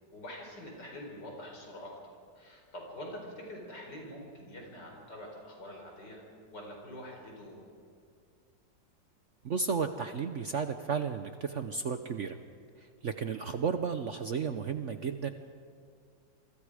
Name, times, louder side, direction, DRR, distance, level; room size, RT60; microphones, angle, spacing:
voice 1, 0.1-6.2 6.5-7.6, left 1 dB, 65° left, 0 dB, 5.4 m, -45 dB
voice 2, 9.4-12.4 12.8-15.3, right 6 dB, 55° right, 8 dB, 0.9 m, -33 dB
27.5 x 23.5 x 5.0 m, 2.2 s
omnidirectional pair, 2.0 m